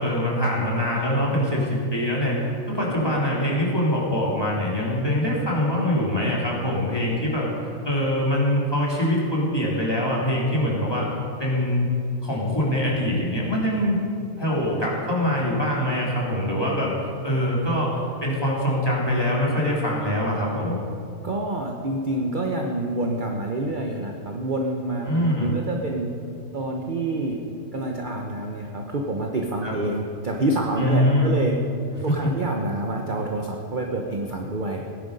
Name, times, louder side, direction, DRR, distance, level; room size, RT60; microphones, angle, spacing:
voice 1, 0.0-2.4 2.7-7.5 7.8-11.1 11.4-11.9 12.2-14.0 14.4-16.9 17.2-20.8 25.1-25.5 29.6-29.8 30.8-31.3 32.1-32.2, left 1 dB, 15° left, -5 dB, 3.1 m, -23 dB
voice 2, 21.2-26.1 26.5-27.4 27.7-31.6 32.0-34.9, right 2 dB, 40° right, 1 dB, 1.0 m, -27 dB
17.5 x 10.5 x 5.3 m, 2.5 s
omnidirectional pair, 1.5 m